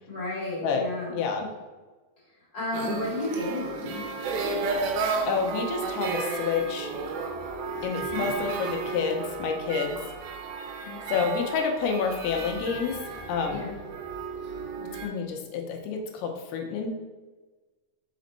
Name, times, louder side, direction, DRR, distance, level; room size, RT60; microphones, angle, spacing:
voice 1, 0.1-1.2 2.5-4.0 8.1-8.2 10.8-11.2 13.5-13.7, left 2 dB, 35° left, -7 dB, 1.8 m, -32 dB
voice 2, 1.1-1.5 5.3-6.9 7.8-10.0 11.1-13.0 13.3-13.7 14.8-16.9, left 5 dB, 85° left, 3 dB, 2.6 m, -29 dB
sound 1, 2.7-15.1, right 4 dB, 80° right, 2.5 m, -33 dB
5.2 x 5.0 x 4.0 m, 1.3 s
omnidirectional pair, 4.6 m